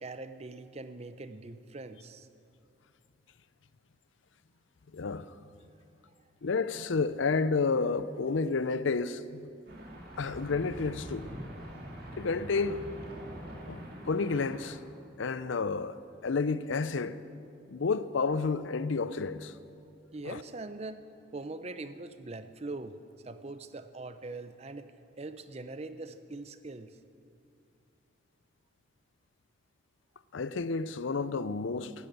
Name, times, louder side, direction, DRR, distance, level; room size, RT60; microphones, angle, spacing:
voice 1, 0.0-2.3 20.1-21.1 21.3-23.0 23.2-27.0, right 2 dB, 30° right, 0.6 m, -42 dB
voice 2, 4.9-5.3 6.4-9.5 10.2-11.3 12.2-12.8 13.7-13.8 14.1-14.8 15.2-17.2 17.7-19.5 20.2-20.4 30.3-31.9, left 4 dB, 75° left, 0.5 m, -30 dB
sound 1, 9.7-14.8, equal, 50° right, 2.2 m, -44 dB
13.5 x 12.0 x 8.0 m
head